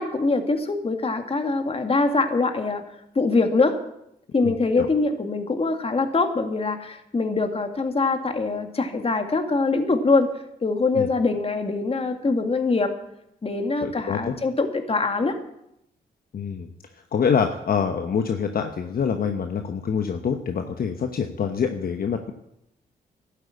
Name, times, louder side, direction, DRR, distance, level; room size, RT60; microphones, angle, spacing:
voice 1, 0.0-2.8 3.2-3.8 4.3-10.3 10.6-12.9 13.4-15.4, left 3 dB, 35° left, 6 dB, 2.1 m, -23 dB
voice 2, 4.4-4.9 10.9-11.1 13.8-14.3 16.3-16.7 17.1-22.3, left 6 dB, 60° left, 5 dB, 1.1 m, -26 dB
12.0 x 8.3 x 8.5 m, 0.81 s
cardioid pair, 60°, 17 cm